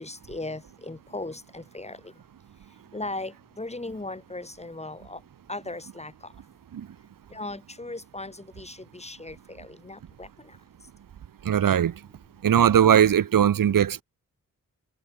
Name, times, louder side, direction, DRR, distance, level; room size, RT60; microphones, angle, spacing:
voice 1, 0.0-2.0 2.9-5.2 5.5-6.1 7.3-10.3, left 2 dB, 20° left, 2.8 m, -37 dB
voice 2, 11.4-11.9 12.4-14.0, right 9 dB, 85° right, 0.9 m, -19 dB
wide cardioid pair, 105°, 33 cm